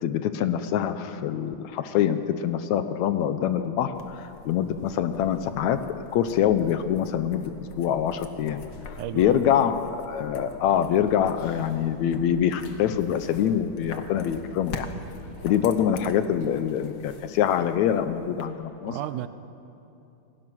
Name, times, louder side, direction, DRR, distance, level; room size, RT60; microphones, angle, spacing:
voice 1, 0.0-5.8 6.1-7.5 7.8-8.6 9.1-14.9 15.4-19.0, left 9 dB, 75° left, 10 dB, 1.9 m, -25 dB
sound 1, 3.9-18.5, left 4 dB, 55° left, 1.3 m, -44 dB
voice 2, 9.0-9.4 18.9-19.3, right 13 dB, 90° right, 12 dB, 2.2 m, -33 dB
Motorcycle, 10.1-16.9, equal, 15° right, 7.1 m, -49 dB
26.5 x 18.5 x 6.2 m, 2.8 s
omnidirectional pair, 3.6 m